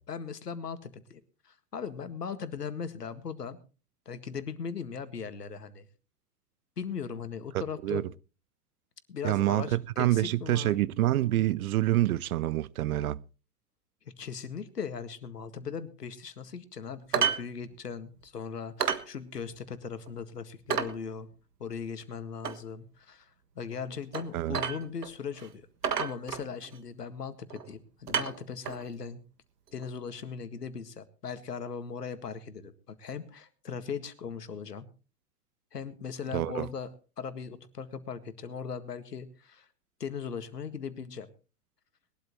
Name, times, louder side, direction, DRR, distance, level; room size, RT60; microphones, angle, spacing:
voice 1, 0.1-1.2 1.4-3.6 4.1-5.8 6.8-8.1 9.1-10.8 14.2-21.3 21.6-23.3 23.6-25.7 26.0-29.2 29.7-34.9 35.7-36.9 37.2-39.7 40.0-41.3, left 6 dB, 85° left, 1.9 m, -38 dB
voice 2, 7.5-8.0 9.2-13.2 24.3-24.6 36.3-36.7, right 14 dB, 65° right, 0.8 m, -27 dB
sound 1, 17.1-17.4 17.7-17.8 18.2-18.3 18.8-19.1 19.5-19.6 20.1-20.2 20.7-21.0 22.4-22.6 24.1-24.3 24.5-25.1 25.4-25.5 25.8-26.8 27.5-27.7 28.1-28.8 29.8-29.9, right 7 dB, 80° right, 1.6 m, -30 dB
21.5 x 12.0 x 3.1 m
hypercardioid pair, 100°, 46 cm